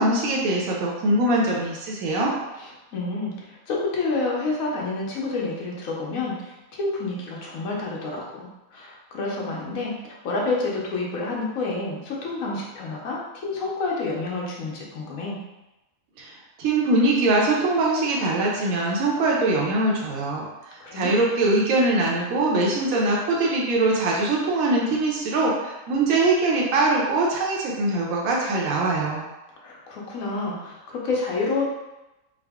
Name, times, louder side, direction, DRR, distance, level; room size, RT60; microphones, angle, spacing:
voice 1, 0.0-2.3 16.2-16.3 16.6-20.5 20.9-29.3, right 2 dB, 75° right, -3 dB, 1.1 m, -22 dB
voice 2, 2.6-10.0 10.2-15.4 20.8-21.1 29.6-31.6, left 3 dB, 75° left, -3 dB, 1.2 m, -29 dB
3.7 x 2.0 x 3.4 m, 0.99 s
omnidirectional pair, 1.5 m